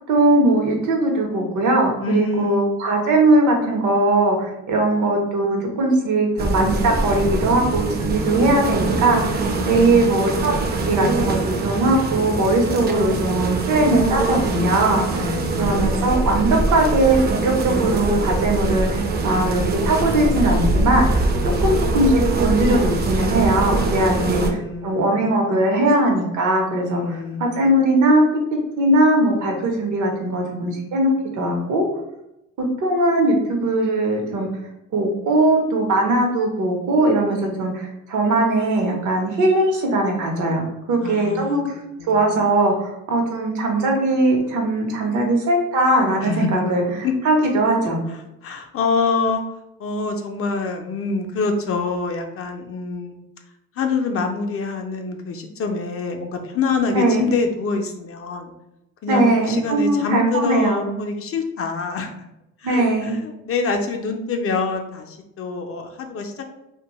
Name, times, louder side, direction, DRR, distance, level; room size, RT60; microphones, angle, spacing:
voice 1, 0.1-15.3 15.6-21.2 21.6-24.4 24.8-28.2 28.5-31.8 32.8-34.5 34.9-40.6 40.9-41.8 42.1-48.0 56.9-57.3 59.1-60.9 62.6-63.2, right 2 dB, 75° right, 1 dB, 0.8 m, -20 dB
voice 2, 2.0-2.6 9.5-10.3 15.1-16.0 21.5-21.6 24.1-25.3 26.9-27.7 41.0-41.6 42.0-42.4 46.2-46.7 47.0-47.1 48.4-49.4 49.8-53.2 53.8-58.5 59.0-62.1 62.6-66.4, left 4 dB, 50° left, 4 dB, 0.4 m, -26 dB
sound 1, 6.4-24.5, right 2 dB, 35° right, 0.4 m, -23 dB
2.6 x 2.2 x 2.9 m, 0.86 s
cardioid pair, 90°, 30 cm